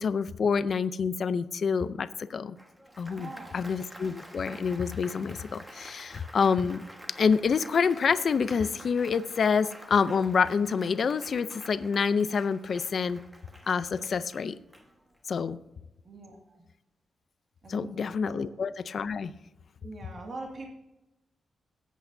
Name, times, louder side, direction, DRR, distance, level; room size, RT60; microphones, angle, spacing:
voice 1, 0.0-2.6 3.0-6.8 7.2-13.2 13.7-14.6 15.3-15.6 17.7-19.3, left 6 dB, 55° left, 13 dB, 0.5 m, -27 dB
Applause, 2.6-15.3, equal, 10° right, 1.4 m, -49 dB
voice 2, 3.1-3.6 16.0-16.6 17.6-18.4 19.8-20.7, right 2 dB, 45° right, 1 dB, 2.0 m, -43 dB
17.0 x 8.3 x 2.7 m, 0.97 s
wide cardioid pair, 130°, 0 cm